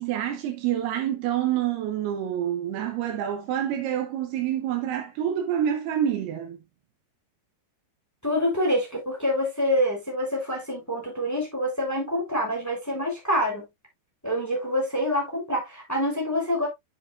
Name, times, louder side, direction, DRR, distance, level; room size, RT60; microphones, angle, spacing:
voice 1, 0.0-6.6, right 10 dB, 75° right, 2.7 m, -27 dB
voice 2, 8.2-13.6 14.2-16.7, equal, 5° left, 3.1 m, -26 dB
9.4 x 6.5 x 2.5 m
omnidirectional pair, 4.9 m